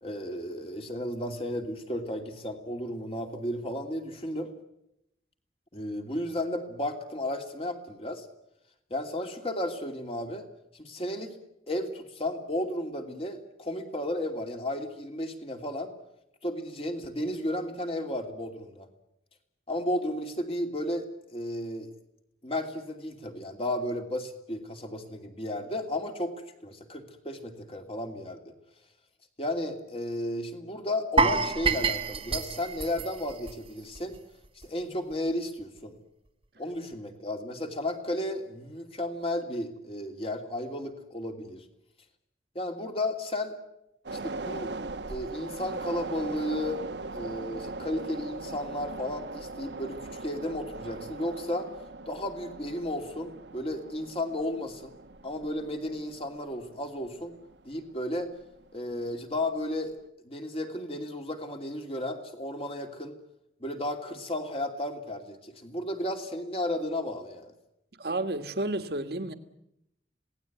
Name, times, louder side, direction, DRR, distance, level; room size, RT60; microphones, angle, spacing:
voice 1, 0.0-4.5 5.7-8.3 8.9-10.5 10.7-11.4 11.7-15.9 16.4-18.9 19.7-21.9 22.4-26.3 26.6-28.5 29.4-34.2 34.5-36.0 36.6-41.6 42.5-43.5 44.1-44.7 45.1-46.8 47.1-51.7 52.1-54.9 55.2-57.4 57.6-58.3 58.7-59.9 60.2-63.2 63.6-67.5, left 1 dB, 30° left, 2.8 m, -33 dB
sound 1, 31.2-34.2 34.4-34.6 35.1-35.2, right 4 dB, 30° right, 1.2 m, -28 dB
sound 2, 44.0-58.6 59.0-59.1, right 3 dB, 75° right, 1.2 m, -40 dB
voice 2, 68.0-69.3, right 2 dB, 60° right, 1.6 m, -31 dB
26.5 x 18.0 x 9.4 m
head